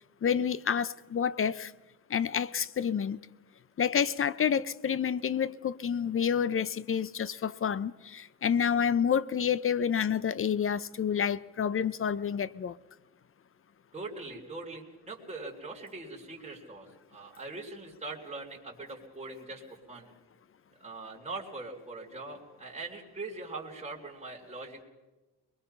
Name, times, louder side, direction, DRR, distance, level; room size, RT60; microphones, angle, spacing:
voice 1, 0.2-1.7 2.1-3.2 3.8-12.8, left 7 dB, 35° left, 0.7 m, -29 dB
voice 2, 13.9-19.6 19.9-20.1 20.8-24.8, right 3 dB, 20° right, 3.6 m, -42 dB
23.0 x 21.5 x 5.7 m
supercardioid pair, 80°, 38 cm